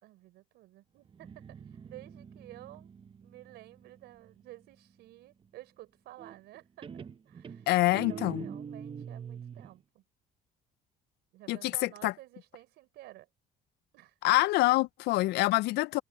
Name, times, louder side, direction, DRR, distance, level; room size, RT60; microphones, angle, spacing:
voice 1, 0.0-2.9 3.2-10.0 11.3-13.3 13.9-14.3, right 16 dB, 85° right, 4.6 m, -52 dB
Guitar, 1.1-4.7 6.2-6.6 6.8-9.8, right 7 dB, 30° right, 0.7 m, -45 dB
voice 2, 7.7-8.4 11.5-12.1 14.2-16.0, left 19 dB, 80° left, 0.4 m, -26 dB
cardioid pair, 110°, 17 cm